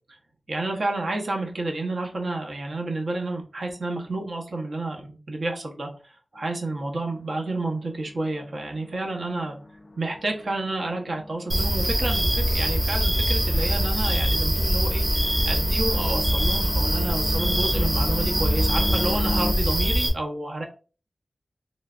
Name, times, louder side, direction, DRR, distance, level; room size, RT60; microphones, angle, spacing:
voice 1, 0.5-5.9 6.3-9.6 10.0-20.6, right 2 dB, 75° right, 1 dB, 0.9 m, -30 dB
sound 1, 6.4-19.5, left 2 dB, 50° left, 0.3 m, -37 dB
sound 2, 11.5-20.1, equal, 35° right, 1.0 m, -23 dB
3.2 x 3.1 x 2.4 m, 0.36 s
wide cardioid pair, 90°, 0 cm